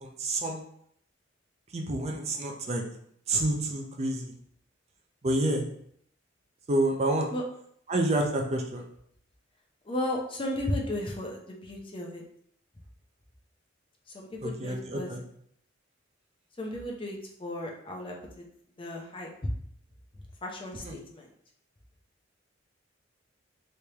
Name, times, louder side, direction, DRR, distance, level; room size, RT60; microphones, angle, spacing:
voice 1, 0.0-0.6 1.7-2.8 3.3-4.3 5.2-5.7 6.7-7.3 7.9-8.8 14.4-15.2 20.8-21.0, right 1 dB, 35° right, 2 dB, 0.5 m, -28 dB
voice 2, 9.8-12.2 14.1-15.1 16.6-18.5 18.8-19.3 20.4-21.3, left 1 dB, 25° left, 0 dB, 0.6 m, -35 dB
3.3 x 3.2 x 2.9 m, 0.67 s
head